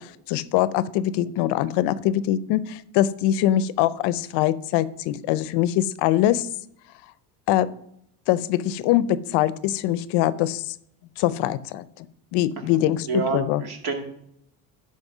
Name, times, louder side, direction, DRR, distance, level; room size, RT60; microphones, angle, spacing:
voice 1, 0.0-6.5 7.5-7.7 8.3-10.7 11.2-11.8 12.3-13.6, left 12 dB, 65° left, 16 dB, 0.6 m, -23 dB
voice 2, 12.6-14.0, right 4 dB, 60° right, 4 dB, 2.1 m, -29 dB
11.0 x 4.3 x 6.1 m, 0.73 s
supercardioid pair, 110°, 43 cm